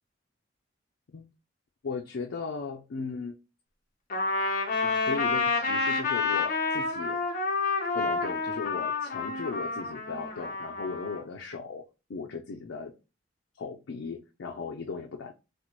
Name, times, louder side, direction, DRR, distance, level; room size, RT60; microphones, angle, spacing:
voice 1, 1.8-3.4 4.8-7.2 7.9-11.8 12.1-12.9 13.5-15.3, left 4 dB, 80° left, 2 dB, 0.5 m, -37 dB
Trumpet, 4.1-11.2, left 4 dB, 50° left, 0.8 m, -29 dB
4.2 x 2.1 x 2.9 m, 0.28 s
head